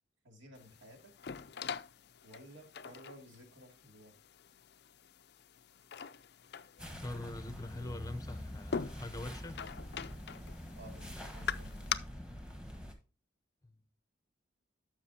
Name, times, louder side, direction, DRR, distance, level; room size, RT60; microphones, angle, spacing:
voice 1, 0.2-1.1 2.2-4.1 10.7-12.0 12.8-12.9, right 1 dB, 70° right, 2.7 m, -55 dB
sound 1, 0.5-11.9, left 7 dB, 55° left, 0.4 m, -44 dB
sound 2, 6.8-12.9, equal, 5° right, 1.3 m, -45 dB
voice 2, 7.0-9.6 13.6-13.8, left 2 dB, 20° left, 0.7 m, -43 dB
12.5 x 6.0 x 2.8 m
head